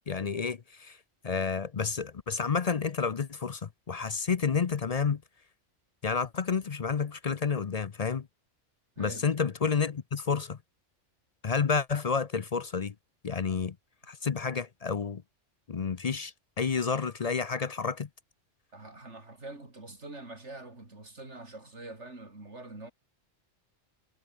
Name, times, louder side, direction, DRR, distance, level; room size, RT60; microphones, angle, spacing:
voice 1, 0.1-1.0 1.2-5.2 6.0-8.3 9.0-10.6 11.4-12.9 13.2-13.8 14.1-15.2 15.7-18.1, left 5 dB, 40° left, 0.6 m, -30 dB
voice 2, 9.0-9.3 18.7-22.9, right 2 dB, 70° right, 4.8 m, -45 dB
omnidirectional pair, 1.2 m